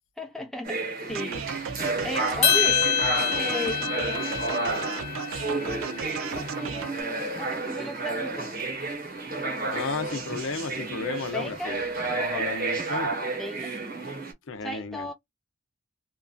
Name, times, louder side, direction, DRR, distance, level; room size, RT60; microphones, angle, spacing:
voice 1, 0.2-0.8 1.1-1.8 2.0-2.9 3.3-8.5 11.3-11.8 13.4-13.7 14.6-15.1, left 1 dB, ahead, 0.6 m, -37 dB
sound 1, 0.6-14.3, right 3 dB, 45° right, 1.0 m, -31 dB
sound 2, 1.1-7.0, right 6 dB, 80° right, 0.5 m, -35 dB
sound 3, 2.4-6.8, left 8 dB, 30° left, 1.0 m, -27 dB
voice 2, 9.7-13.1 14.5-15.1, left 4 dB, 70° left, 0.6 m, -33 dB
2.9 x 2.5 x 2.2 m
head